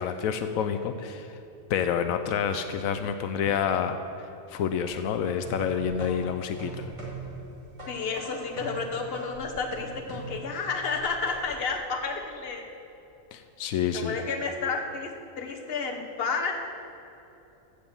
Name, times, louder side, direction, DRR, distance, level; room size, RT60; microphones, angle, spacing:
voice 1, 0.0-1.4 1.7-4.0 4.5-6.9 13.3-14.2, left 7 dB, 85° left, 8 dB, 1.0 m, -28 dB
sound 1, 4.8-11.7, right 2 dB, 25° right, 1.9 m, -41 dB
voice 2, 7.9-12.6 13.9-15.1 15.4-16.5, left 4 dB, 50° left, 3 dB, 1.2 m, -31 dB
15.0 x 5.1 x 7.1 m, 2.9 s
omnidirectional pair, 1.4 m